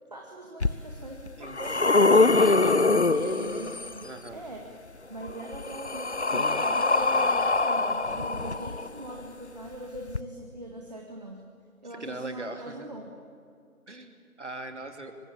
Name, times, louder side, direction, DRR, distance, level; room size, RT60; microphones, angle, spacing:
voice 1, 0.1-4.7 5.1-11.4 11.8-13.1, right 1 dB, 30° right, 0 dB, 2.0 m, -41 dB
sound 1, 0.6-0.7 1.3-4.0 5.2-9.1 10.1-10.2, left 3 dB, 50° left, 0.9 m, -23 dB
voice 2, 2.1-3.0 4.0-4.5 11.9-12.9 13.9-15.1, right 2 dB, 55° right, 6 dB, 2.7 m, -40 dB
23.0 x 23.0 x 8.5 m, 2.3 s
figure-of-eight pair, 165°, 43 cm